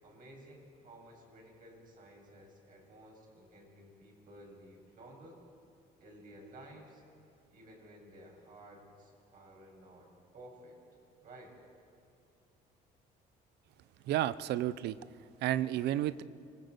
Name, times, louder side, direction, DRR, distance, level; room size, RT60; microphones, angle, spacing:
voice 1, 0.0-5.4 6.0-7.0 7.5-10.1 10.3-10.8 11.2-11.6, right 1 dB, 55° right, -1 dB, 7.5 m, -54 dB
voice 2, 14.0-15.0 15.4-16.2, right 13 dB, 80° right, 17 dB, 0.7 m, -31 dB
26.5 x 19.0 x 8.0 m, 2.6 s
cardioid pair, 110°, 17 cm